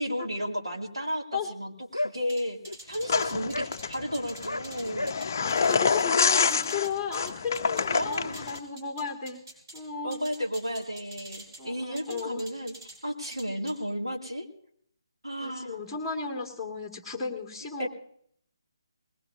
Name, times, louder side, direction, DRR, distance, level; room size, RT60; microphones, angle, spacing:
voice 1, 0.0-5.2 7.9-8.4 10.0-12.7 13.0-14.5 15.2-15.8 17.8-17.9, equal, 90° right, 0 dB, 2.5 m, -33 dB
sound 1, 1.9-2.1 2.6-2.8 3.0-3.1 3.5-3.7 4.4-4.6 4.9-5.1, left 1 dB, 85° left, 0.5 m, -31 dB
sound 2, 2.3-7.9 8.1-9.8 10.1-11.6 12.0-13.0 13.2-13.7, right 1 dB, 45° right, 5.9 m, -46 dB
sound 3, 3.1-8.6, left 5 dB, 40° left, 0.6 m, -27 dB
voice 2, 5.1-9.4 9.7-10.2 11.6-12.5 15.4-17.9, left 5 dB, ahead, -2 dB, 2.0 m, -35 dB
21.0 x 19.0 x 2.7 m, 0.65 s
figure-of-eight pair, 145°, 3 cm